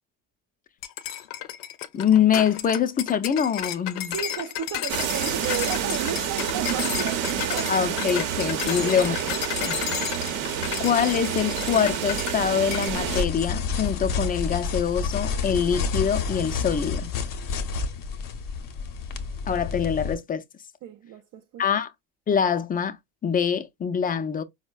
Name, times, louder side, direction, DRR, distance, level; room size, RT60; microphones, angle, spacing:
sound 1, 0.8-12.4 12.7-13.0, left 12 dB, 85° left, 0.6 m, -33 dB
voice 1, 1.9-4.1 7.7-9.2 9.6-9.8 10.8-17.1 19.5-20.4 21.6-21.9 22.3-23.0 23.2-24.4, left 7 dB, 20° left, 0.4 m, -24 dB
voice 2, 4.1-7.9 8.7-9.0 20.8-21.6, right 9 dB, 45° right, 0.5 m, -34 dB
sound 2, 4.9-13.2, right 9 dB, 70° right, 0.9 m, -28 dB
sound 3, 12.9-20.1, left 5 dB, 45° left, 0.7 m, -29 dB
4.3 x 2.1 x 2.3 m
supercardioid pair, 80°, 44 cm